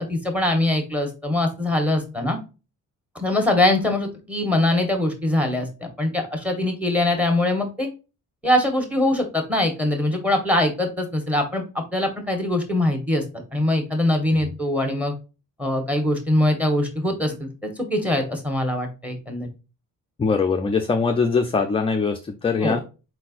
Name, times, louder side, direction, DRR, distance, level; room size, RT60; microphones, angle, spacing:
voice 1, 0.0-2.4 3.1-7.9 8.4-13.2 13.5-15.1 15.6-19.5 22.6-22.8, left 1 dB, 5° right, 5 dB, 1.1 m, -22 dB
voice 2, 20.2-22.8, left 4 dB, 20° left, 4 dB, 0.3 m, -22 dB
4.3 x 4.2 x 2.4 m, 0.30 s
cardioid pair, 165°, 33 cm